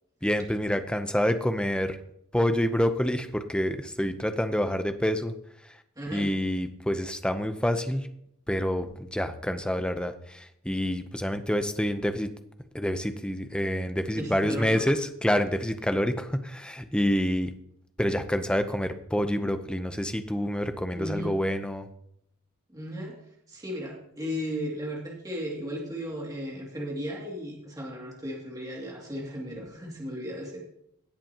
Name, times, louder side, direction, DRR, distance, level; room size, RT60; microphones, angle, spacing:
voice 1, 0.2-2.0 2.3-5.3 6.1-8.1 8.5-12.3 12.7-17.5 18.0-21.9, equal, 5° left, 8 dB, 0.7 m, -27 dB
voice 2, 6.0-6.3 14.1-14.8 20.9-21.4 22.7-23.2 23.5-30.6, equal, 15° right, -3 dB, 2.5 m, -35 dB
17.5 x 8.2 x 3.0 m, 0.73 s
head